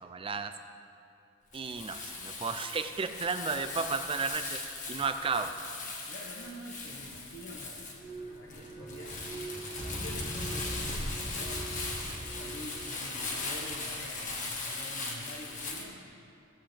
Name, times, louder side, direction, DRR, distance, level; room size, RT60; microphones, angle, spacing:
voice 1, 0.0-0.5 1.5-4.6 4.9-5.5, right 4 dB, 25° right, 9 dB, 0.5 m, -33 dB
Crumpling crinkling, 1.5-15.8, left 3 dB, 40° left, 1.4 m, -39 dB
voice 2, 6.1-8.0 8.3-16.0, left 1 dB, 60° left, -5 dB, 1.2 m, -47 dB
sound 1, 8.0-13.4, right 1 dB, 10° left, 1.7 m, -41 dB
16.5 x 7.7 x 3.4 m, 2.7 s
head